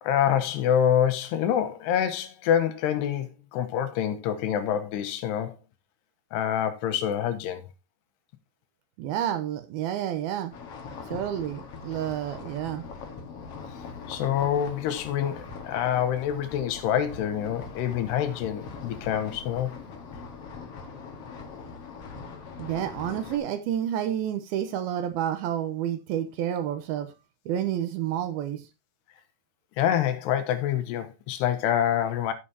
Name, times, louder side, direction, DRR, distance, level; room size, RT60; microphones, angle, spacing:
voice 1, 0.0-5.6 6.3-7.6 14.1-19.7 29.8-32.3, left 9 dB, 85° left, 3.1 m, -26 dB
voice 2, 9.0-10.5 11.1-12.9 22.6-27.1 27.5-28.6, right 10 dB, 75° right, 2.6 m, -29 dB
sound 1, 10.5-23.4, left 5 dB, 55° left, 1.8 m, -42 dB
14.5 x 6.8 x 2.8 m
omnidirectional pair, 4.8 m